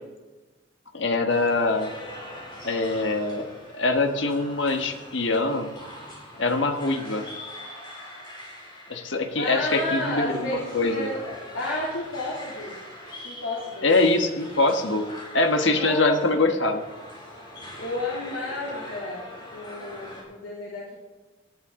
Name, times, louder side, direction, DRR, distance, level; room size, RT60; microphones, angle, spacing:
voice 1, 0.9-1.9 2.6-3.5 3.7-5.7 6.4-7.2 8.9-11.1 13.8-15.0 15.3-16.8, left 2 dB, 65° left, 6 dB, 1.4 m, -23 dB
sound 1, 1.3-20.2, left 1 dB, 25° left, 4.4 m, -42 dB
voice 2, 9.3-12.7 13.2-13.9 15.7-16.3 17.8-19.2 19.5-20.9, left 1 dB, 90° left, -6 dB, 2.9 m, -31 dB
18.0 x 11.0 x 3.8 m, 1.2 s
head